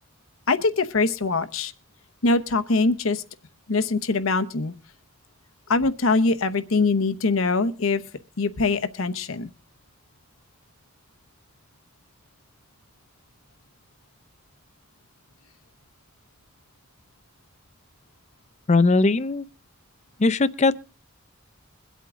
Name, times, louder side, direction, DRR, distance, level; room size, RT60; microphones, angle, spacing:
voice 1, 0.5-1.7 2.2-3.2 3.7-4.7 5.7-8.0 8.4-9.5, left 3 dB, 80° left, 0.9 m, -23 dB
voice 2, 18.7-19.5 20.2-20.7, left 3 dB, 35° left, 0.5 m, -19 dB
22.5 x 8.2 x 3.7 m
head